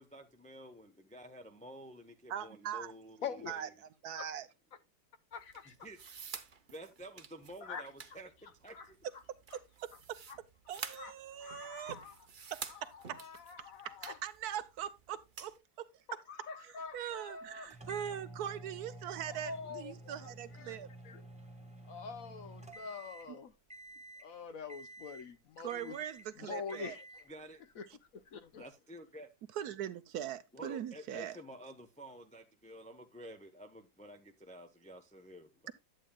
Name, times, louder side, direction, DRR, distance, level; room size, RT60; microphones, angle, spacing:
voice 1, 0.0-3.7 5.7-6.0 6.4-9.0 27.3-27.7 28.6-29.3 30.5-35.7, equal, 10° left, 0.3 m, -51 dB
voice 2, 2.3-2.9 3.5-3.7 4.0-4.5 9.5-10.2 10.7-12.0 12.5-13.2 13.8-15.9 16.6-20.9 25.6-27.0 29.5-31.3, right 10 dB, 70° right, 1.1 m, -41 dB
voice 3, 3.2-3.5 5.3-5.7 7.6-7.9 8.7-8.9 10.3-10.4 11.0-11.1 11.4-12.1 12.7-14.2 16.3-17.7 19.3-20.8 21.0-21.2 21.9-23.5 24.2-26.0 26.4-27.0 27.8-27.9 28.1-28.7, left 6 dB, 60° left, 1.1 m, -45 dB
sound 1, 5.3-15.6, right 6 dB, 40° right, 0.7 m, -50 dB
sound 2, 17.7-23.4 23.7-24.3 24.7-25.3 25.7-26.3 26.7-27.3, right 1 dB, 5° right, 1.4 m, -51 dB
11.0 x 8.6 x 2.2 m
omnidirectional pair, 1.8 m